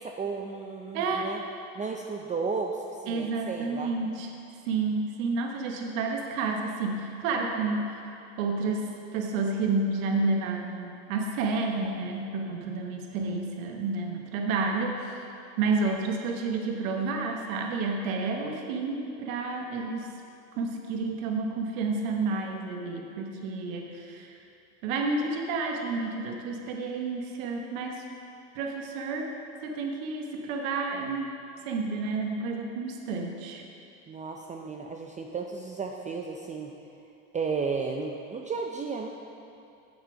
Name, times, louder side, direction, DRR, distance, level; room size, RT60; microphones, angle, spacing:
voice 1, 0.0-1.4 1.7-3.9 34.1-36.7 37.3-39.1, right 4 dB, 20° right, 1 dB, 0.5 m, -33 dB
voice 2, 0.9-1.3 3.1-4.3 4.6-8.0 8.4-15.2 15.6-20.1 20.5-24.3 24.8-28.0 28.5-31.2 31.6-33.6, right 3 dB, 80° right, 2 dB, 1.1 m, -30 dB
7.3 x 7.2 x 5.2 m, 2.6 s
supercardioid pair, 100°, 40 cm